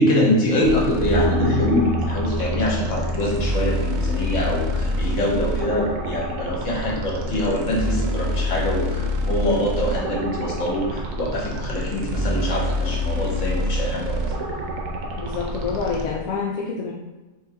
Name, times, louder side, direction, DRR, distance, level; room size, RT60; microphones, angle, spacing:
voice 1, 0.0-14.2, left 1 dB, 60° left, -4 dB, 1.5 m, -24 dB
sound 1, 0.6-16.0, equal, 75° right, 1.1 m, -27 dB
Bass guitar, 1.0-7.3, right 1 dB, 10° right, 0.3 m, -30 dB
voice 2, 15.2-16.9, left 5 dB, 80° left, -4 dB, 1.1 m, -27 dB
5.3 x 3.0 x 3.3 m, 1.1 s
omnidirectional pair, 1.5 m